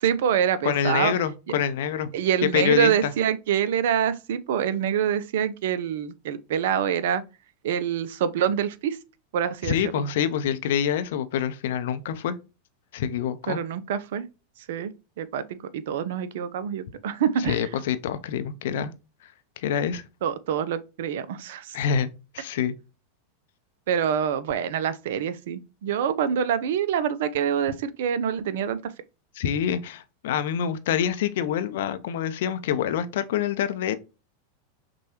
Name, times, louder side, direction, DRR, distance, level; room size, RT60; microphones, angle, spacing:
voice 1, 0.0-1.1 2.1-7.2 7.6-9.0 9.3-10.0 13.5-14.2 14.7-15.4 15.7-17.7 20.2-21.7 23.9-28.9, right 8 dB, 65° right, 0.4 m, -26 dB
voice 2, 0.6-2.1 2.5-3.1 9.6-12.4 12.9-13.6 17.4-18.9 19.6-20.0 21.7-22.1 22.3-22.7 29.4-33.9, left 9 dB, 65° left, 0.5 m, -26 dB
6.0 x 2.3 x 2.9 m
figure-of-eight pair, 90°, 0 cm